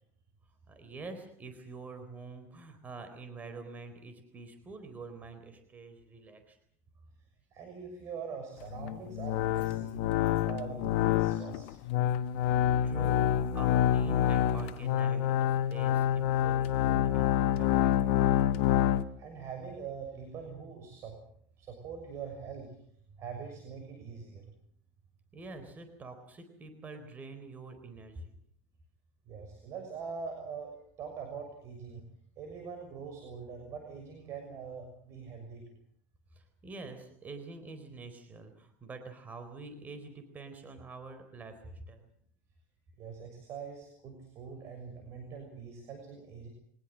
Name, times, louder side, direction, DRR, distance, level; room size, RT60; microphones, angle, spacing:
voice 1, 0.7-6.6 12.8-18.3 25.3-28.3 36.3-42.1, right 3 dB, 25° right, 8 dB, 4.1 m, -46 dB
voice 2, 7.5-10.0 10.4-11.7 12.2-12.3 19.2-21.2 21.6-22.8 23.2-24.5 29.3-32.1 32.4-35.7 43.0-46.5, right 5 dB, 45° right, 5 dB, 6.5 m, -43 dB
sound 1, 8.6-19.0, left 11 dB, 75° left, 1.3 m, -27 dB
24.0 x 20.0 x 7.5 m, 0.64 s
supercardioid pair, 120°, 7 cm